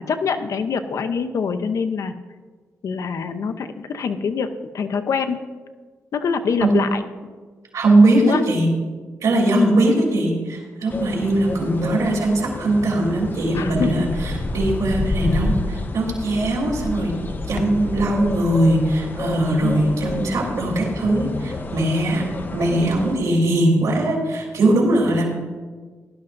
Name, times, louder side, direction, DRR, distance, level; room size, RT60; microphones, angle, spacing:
voice 1, 0.0-2.1 2.8-4.5 4.7-5.4 6.1-7.0 8.2-8.4 9.5-9.8 13.5-14.0 19.6-19.9, left 6 dB, 70° left, 8 dB, 0.7 m, -24 dB
voice 2, 7.7-8.7 9.2-17.1 17.5-22.2 22.5-25.3, right 1 dB, 75° right, -1 dB, 3.4 m, -20 dB
sound 1, 10.9-23.2, left 2 dB, 35° left, 0.8 m, -29 dB
17.5 x 11.5 x 2.6 m, 1.5 s
cardioid pair, 90°, 6 cm